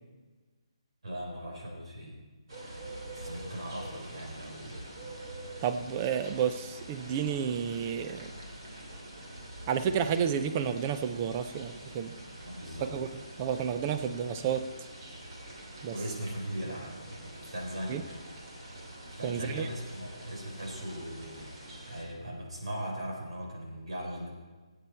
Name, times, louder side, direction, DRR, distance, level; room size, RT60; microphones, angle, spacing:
voice 1, 1.0-2.2 3.1-4.9 12.4-12.9 15.9-18.0 19.2-21.5 21.9-24.3, equal, 70° right, -1 dB, 4.3 m, -39 dB
sound 1, 2.5-22.0, right 1 dB, 40° right, 2.5 m, -45 dB
voice 2, 5.6-8.3 9.7-12.1 12.9-14.7 15.8-16.0 17.9-18.0 19.2-19.7, right 8 dB, 15° right, 10 dB, 0.4 m, -31 dB
18.5 x 8.4 x 4.4 m, 1.3 s
hypercardioid pair, 175°, 3 cm